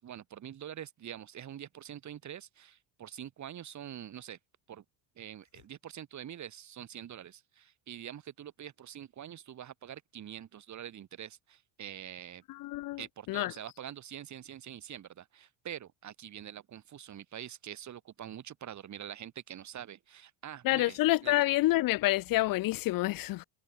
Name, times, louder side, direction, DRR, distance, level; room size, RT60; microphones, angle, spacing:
voice 1, 0.0-4.4 4.7-4.8 5.2-12.4 13.0-21.3, right 10 dB, 35° right, 5.0 m, -45 dB
voice 2, 12.5-13.0 13.3-13.5 20.6-23.4, left 18 dB, 45° left, 0.8 m, -28 dB
cardioid pair, 165°, 49 cm